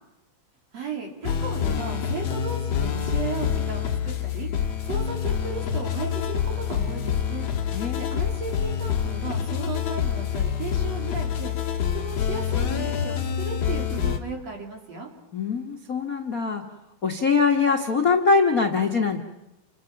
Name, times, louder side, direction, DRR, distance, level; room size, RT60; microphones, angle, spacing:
voice 1, 0.7-4.5 4.9-7.5 8.0-11.5 11.9-15.1, right 4 dB, 45° right, 2 dB, 4.2 m, -35 dB
sound 1, 1.2-14.2, left 8 dB, 50° left, 2.4 m, -27 dB
voice 2, 7.7-8.1 15.3-16.6 17.0-19.2, left 4 dB, 80° left, 5 dB, 0.7 m, -22 dB
29.0 x 26.5 x 6.0 m, 0.95 s
omnidirectional pair, 4.4 m